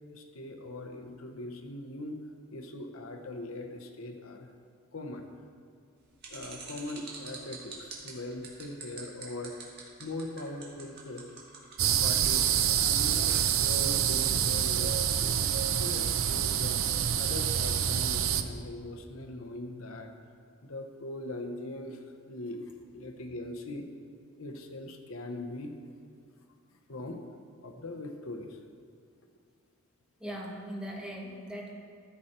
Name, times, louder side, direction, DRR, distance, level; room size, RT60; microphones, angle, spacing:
voice 1, 0.1-2.2 2.5-4.5 4.9-5.2 6.3-9.5 10.0-11.3 12.0-12.5 12.9-15.0 15.2-16.8 17.2-20.1 20.6-22.6 22.9-23.8 24.4-25.7 26.9-27.2 27.6-28.6, left 2 dB, 70° left, 5 dB, 0.9 m, -41 dB
sound 1, 6.2-13.1, right 5 dB, 50° right, 1.9 m, -45 dB
sound 2, 11.8-18.4, right 9 dB, 65° right, 0.5 m, -27 dB
voice 2, 30.2-31.7, equal, 5° right, -2 dB, 1.2 m, -39 dB
14.0 x 6.6 x 4.3 m, 2.3 s
head